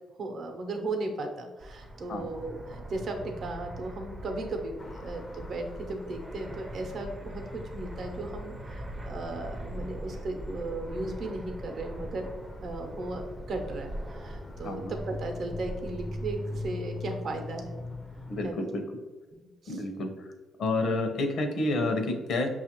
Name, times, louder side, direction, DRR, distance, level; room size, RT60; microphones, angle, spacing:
voice 1, 0.2-12.3 12.6-17.8 18.4-18.7 19.3-19.8, right 2 dB, 60° right, 4 dB, 0.7 m, -36 dB
Fixed-wing aircraft airplane, 1.6-16.7, right 1 dB, 25° right, 0.5 m, -42 dB
sound 1, 4.8-18.5, left 2 dB, 30° left, 0.4 m, -43 dB
voice 2, 18.3-18.8 19.7-20.1 20.6-22.5, left 2 dB, 70° left, 5 dB, 0.6 m, -29 dB
5.6 x 2.4 x 2.9 m, 1.2 s
cardioid pair, 90°, 0 cm